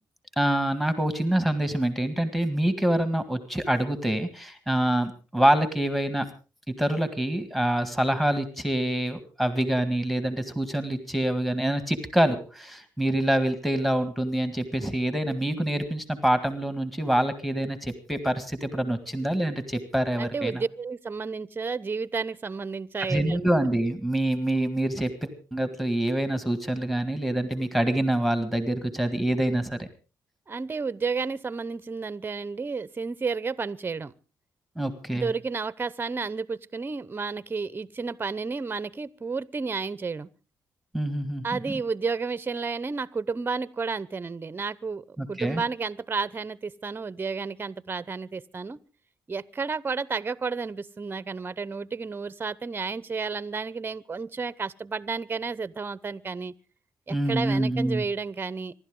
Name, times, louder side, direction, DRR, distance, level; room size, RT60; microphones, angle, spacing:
voice 1, 0.4-6.3 6.7-20.6 23.1-29.9 34.8-35.3 40.9-41.6 45.2-45.6 57.1-58.0, right 1 dB, ahead, 1.8 m, -26 dB
voice 2, 20.2-23.4 30.5-34.1 35.1-40.3 41.4-48.8 49.3-56.5 57.1-58.7, right 4 dB, 25° right, 0.7 m, -31 dB
26.0 x 12.0 x 3.8 m
cardioid pair, 85°, 7 cm